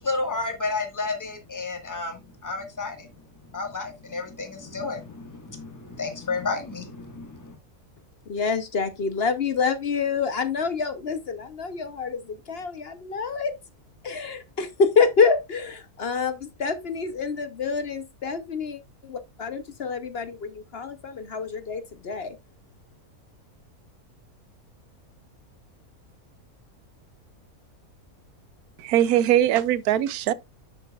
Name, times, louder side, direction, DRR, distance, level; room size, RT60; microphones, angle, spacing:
voice 1, 0.0-3.1 3.5-7.5, left 3 dB, 15° left, 1.4 m, -31 dB
voice 2, 8.3-13.5 14.0-22.3, left 5 dB, 50° left, 0.8 m, -27 dB
voice 3, 28.8-30.3, right 12 dB, 90° right, 1.1 m, -21 dB
9.8 x 6.7 x 2.3 m
omnidirectional pair, 1.5 m